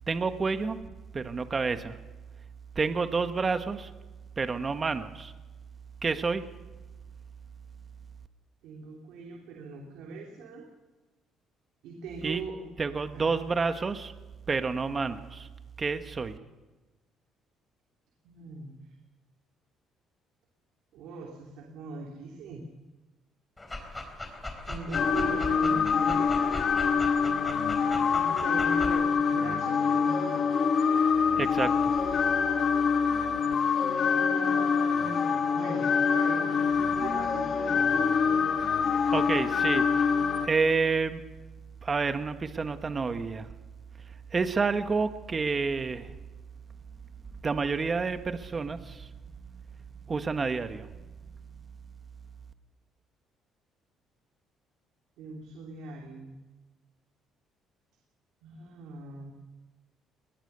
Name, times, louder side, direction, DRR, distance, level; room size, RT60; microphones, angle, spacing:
voice 1, 0.1-0.8 1.1-2.0 2.7-3.9 4.4-5.3 6.0-6.5 12.2-12.4 12.8-14.1 14.5-15.5 15.8-16.4 31.4-31.9 39.1-40.2 40.4-41.2 41.8-43.5 44.3-46.1 47.4-49.1 50.1-51.1, right 4 dB, 30° right, 9 dB, 1.4 m, -29 dB
voice 2, 8.6-10.7 11.8-12.7 13.1-13.3 18.2-18.9 20.9-22.6 24.6-26.6 28.1-30.5 34.0-35.2 35.5-37.8 55.2-56.4 58.4-59.3, right 4 dB, 85° right, 0 dB, 2.9 m, -40 dB
Dog, 23.6-29.0, left 2 dB, 15° left, 4.1 m, -38 dB
sound 1, 24.9-40.5, left 6 dB, 50° left, 1.6 m, -25 dB
20.5 x 19.5 x 6.8 m, 1.2 s
cardioid pair, 95°, 0 cm